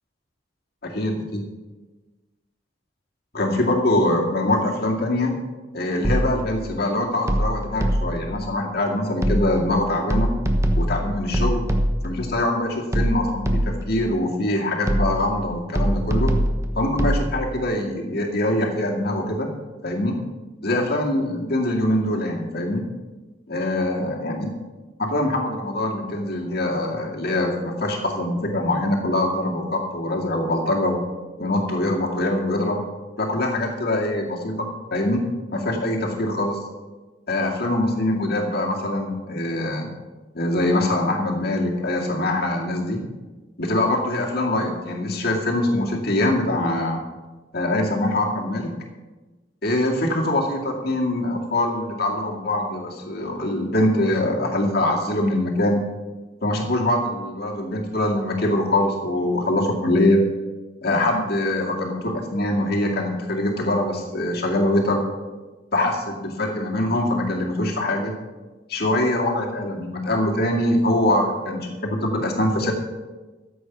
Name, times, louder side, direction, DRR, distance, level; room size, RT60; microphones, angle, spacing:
voice 1, 0.8-1.4 3.3-5.4 5.7-10.3 10.7-11.7 12.0-16.3 16.8-19.5 19.8-20.2 20.6-22.9 23.5-24.5 25.0-31.0 31.4-32.9 33.2-36.6 37.3-39.9 40.3-43.0 43.6-47.0 47.5-48.7 49.6-55.8 56.4-60.2 60.8-65.0 65.7-68.1 68.7-72.7, left 1 dB, 55° left, 0 dB, 2.2 m, -23 dB
sound 1, 6.0-6.6 7.3-8.3 9.2-9.7 10.1-12.2 12.9-14.0 14.9-15.4 15.8-17.3, equal, 15° right, 1.0 m, -22 dB
13.5 x 7.8 x 5.9 m, 1.2 s
head